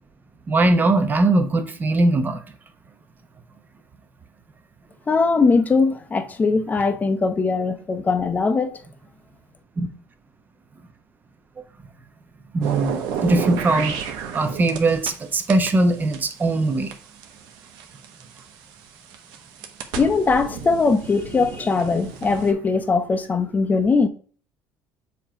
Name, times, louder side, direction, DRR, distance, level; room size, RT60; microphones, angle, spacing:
voice 1, 0.5-2.4 9.8-9.9 12.5-14.0 14.3-16.9, right 2 dB, 25° right, 1.0 m, -20 dB
voice 2, 5.1-8.7 20.0-24.1, left 4 dB, 20° left, 0.8 m, -20 dB
sound 1, 12.6-15.2 15.5-18.4 19.0-22.5, right 7 dB, 80° right, 1.1 m, -31 dB
7.2 x 3.1 x 5.0 m
cardioid pair, 125°, 7 cm